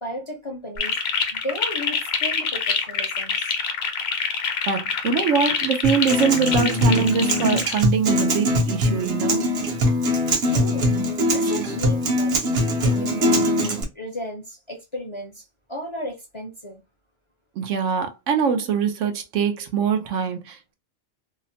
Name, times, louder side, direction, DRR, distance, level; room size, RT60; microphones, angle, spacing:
voice 1, 0.0-0.9 1.3-3.5 10.4-10.9 11.3-12.5 12.8-13.4 13.9-15.4 15.7-16.8, equal, 35° left, 0.5 m, -34 dB
sound 1, 0.8-7.8, left 6 dB, 65° left, 0.8 m, -26 dB
voice 2, 4.7-9.5 17.6-20.7, right 6 dB, 85° right, 1.0 m, -23 dB
Acoustic guitar, 5.8-13.8, left 1 dB, 65° right, 1.1 m, -22 dB
2.8 x 2.1 x 2.6 m
omnidirectional pair, 1.2 m